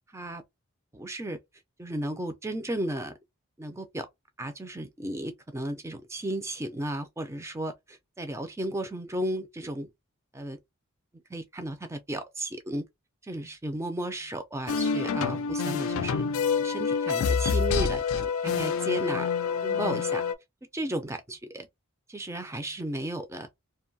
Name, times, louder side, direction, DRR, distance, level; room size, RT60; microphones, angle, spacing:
voice 1, 0.9-1.4 1.8-3.1 3.6-4.1 4.4-9.9 10.3-10.6 11.3-12.8 13.2-16.3 16.6-19.3 19.6-20.2 20.7-21.7 22.1-23.5, right 1 dB, 15° right, 0.4 m, -34 dB
sound 1, 14.7-20.3, left 6 dB, 70° left, 0.3 m, -27 dB
2.6 x 2.2 x 2.6 m
head